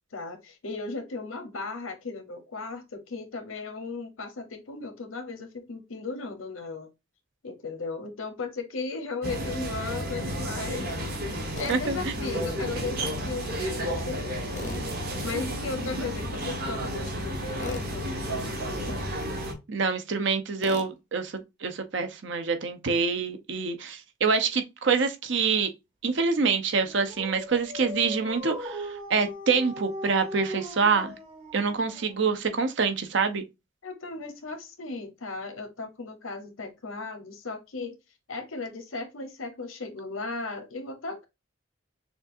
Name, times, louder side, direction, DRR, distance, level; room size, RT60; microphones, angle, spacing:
voice 1, 0.1-6.9 7.4-11.2 11.6-19.0 33.8-38.0 38.3-41.3, left 3 dB, 90° left, 0.9 m, -36 dB
sound 1, 9.2-19.5, equal, 50° right, 1.1 m, -32 dB
Tools, 11.5-11.8 14.5-14.9 17.6-17.9 20.6-20.9, left 3 dB, 35° left, 0.6 m, -39 dB
voice 2, 11.7-12.1 19.7-25.7 26.0-31.1 31.5-33.4, right 5 dB, 65° right, 0.7 m, -26 dB
Dog, 26.8-32.5, left 1 dB, 30° right, 0.8 m, -39 dB
6.2 x 2.4 x 2.6 m
head